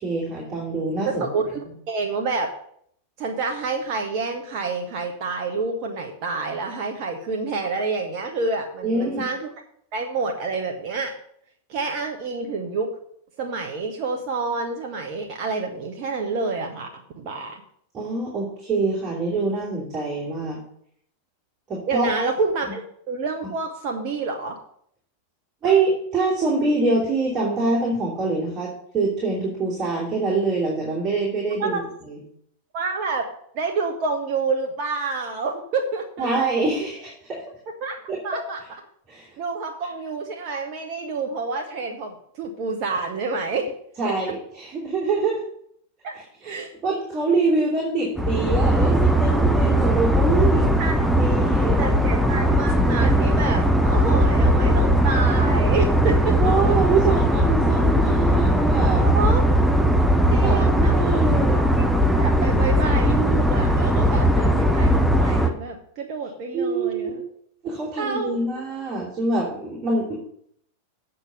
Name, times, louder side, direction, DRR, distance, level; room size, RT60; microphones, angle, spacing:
voice 1, 0.0-1.2 8.8-9.2 17.9-20.6 21.7-22.1 25.6-31.8 32.1-32.2 36.2-37.4 38.1-38.2 39.1-39.3 44.0-45.4 46.4-46.5 46.8-50.8 51.1-51.8 56.4-59.0 60.4-61.6 66.5-67.1 67.6-70.2, right 3 dB, 25° right, -6 dB, 3.1 m, -25 dB
voice 2, 1.0-2.5 3.2-9.5 9.9-11.1 11.7-12.9 13.4-17.6 21.9-24.6 31.6-31.8 32.7-33.3 33.5-36.3 37.8-38.0 38.2-38.6 39.4-43.7 44.0-44.1 46.0-46.7 50.8-51.0 51.8-56.3 56.7-56.8 59.0-59.4 60.3-61.0 61.8-61.9 62.2-67.2 68.0-68.3, right 4 dB, 45° right, 2 dB, 1.1 m, -28 dB
sound 1, 48.2-65.5, equal, ahead, 0.9 m, -19 dB
8.3 x 5.5 x 6.9 m, 0.68 s
figure-of-eight pair, 90°, 0 cm